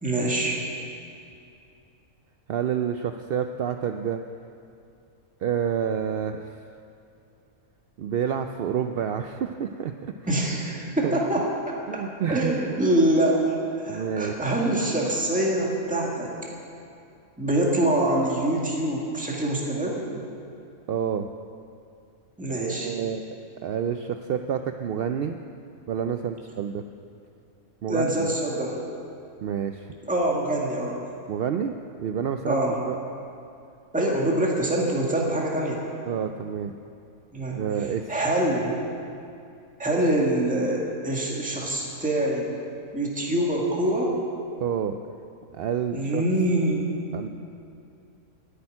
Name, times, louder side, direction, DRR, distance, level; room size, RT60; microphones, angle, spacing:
voice 1, 0.0-0.6 10.3-11.4 12.3-13.5 13.8-16.3 17.4-20.0 22.4-22.9 27.9-28.8 30.0-31.0 32.5-32.7 33.9-35.8 37.3-37.6 38.1-38.8 39.8-42.5 42.9-44.1 45.9-46.9, right 1 dB, 5° right, -3 dB, 1.8 m, -24 dB
voice 2, 2.5-4.2 5.4-6.6 8.0-9.9 11.0-11.2 11.9-12.6 13.9-14.3 20.9-21.3 22.6-25.4 25.9-26.8 27.8-28.3 29.4-29.9 31.3-31.7 32.0-32.6 32.8-33.0 36.1-36.7 37.5-38.1 44.6-45.0 45.5-46.2 47.1-47.3, right 8 dB, 70° right, 7 dB, 0.5 m, -28 dB
10.5 x 8.7 x 9.7 m, 2.6 s
omnidirectional pair, 1.5 m